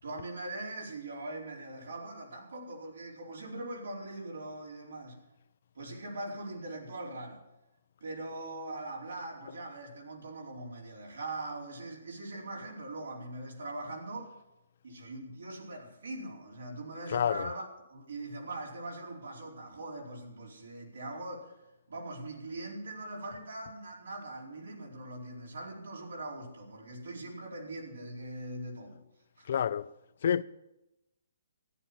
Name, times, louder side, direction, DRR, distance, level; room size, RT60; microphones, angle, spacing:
voice 1, 0.0-5.2 5.7-7.4 8.0-14.3 14.8-21.5 21.9-29.0 29.4-29.5, right 2 dB, 85° right, 4.6 m, -41 dB
voice 2, 17.1-17.5 29.5-29.9 30.2-30.4, left 8 dB, 55° left, 0.5 m, -28 dB
14.0 x 11.0 x 6.0 m
hypercardioid pair, 155°, 0 cm